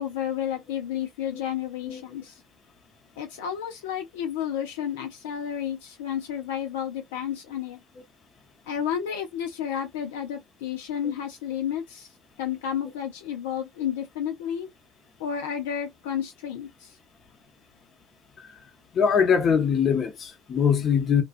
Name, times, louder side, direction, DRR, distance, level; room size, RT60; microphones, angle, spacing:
voice 1, 0.0-2.4 3.2-7.8 8.7-12.1 12.4-14.7 15.2-17.0, left 9 dB, 80° left, 0.5 m, -31 dB
voice 2, 18.9-21.2, left 7 dB, 40° left, 0.8 m, -22 dB
2.3 x 2.2 x 2.4 m
hypercardioid pair, 70°, 0 cm